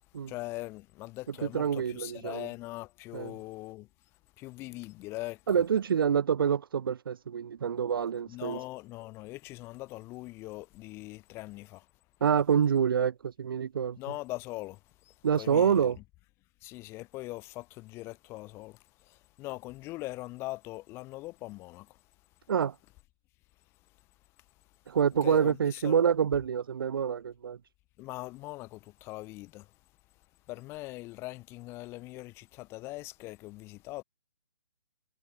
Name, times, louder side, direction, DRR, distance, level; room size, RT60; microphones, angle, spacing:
voice 1, 0.3-3.9 4.4-5.4 8.3-11.9 14.0-15.9 16.6-22.0 25.2-26.0 28.0-29.7 30.5-34.0, left 19 dB, 20° left, 1.9 m, -41 dB
voice 2, 1.4-2.5 3.1-3.3 5.5-8.6 12.2-14.0 15.2-16.0 22.5-22.8 24.9-27.6, right 7 dB, 60° right, 0.9 m, -27 dB
hypercardioid pair, 155°, 13 cm